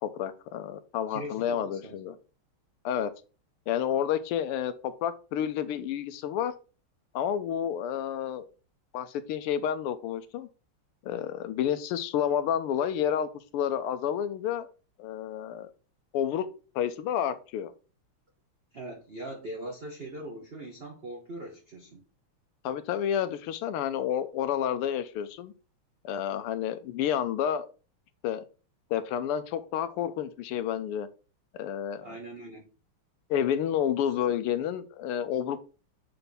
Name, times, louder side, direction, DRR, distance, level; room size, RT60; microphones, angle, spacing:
voice 1, 0.0-2.2 2.8-3.1 3.7-6.5 7.1-8.5 8.9-10.5 11.0-14.7 15.0-15.7 16.1-16.5 16.7-17.7 22.6-25.5 26.0-27.7 28.2-28.4 28.9-31.1 31.5-32.1 33.3-35.6, left 9 dB, 85° left, 1.6 m, -30 dB
voice 2, 1.1-2.0 18.7-22.0 32.0-32.7 34.1-34.2, right 1 dB, 75° right, 0.5 m, -41 dB
6.7 x 3.4 x 4.0 m
omnidirectional pair, 2.4 m